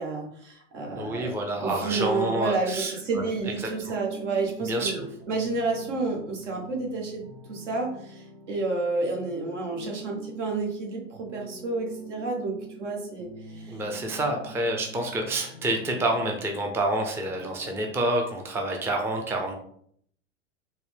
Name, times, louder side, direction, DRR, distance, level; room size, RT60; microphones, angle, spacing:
voice 1, 0.0-13.3 13.5-13.8, right 3 dB, 70° right, 0 dB, 1.4 m, -30 dB
voice 2, 0.9-3.9 4.6-5.0 13.7-19.5, right 1 dB, 5° right, 2 dB, 0.4 m, -28 dB
sound 1, 1.5-17.7, right 3 dB, 90° right, 1.0 m, -45 dB
4.5 x 2.1 x 3.4 m, 0.65 s
hypercardioid pair, 95°, 37 cm